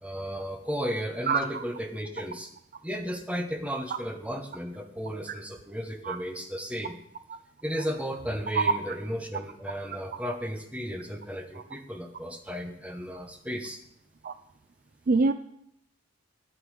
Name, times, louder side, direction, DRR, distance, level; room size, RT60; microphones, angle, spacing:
voice 1, 0.0-2.5 2.8-7.0 7.6-13.8, equal, 5° right, 4 dB, 1.0 m, -34 dB
voice 2, 1.3-1.6 6.0-6.2 8.5-8.8 11.5-11.6 14.2-14.3 15.1-15.3, right 4 dB, 40° right, 11 dB, 0.3 m, -24 dB
12.5 x 8.9 x 4.9 m, 0.74 s
head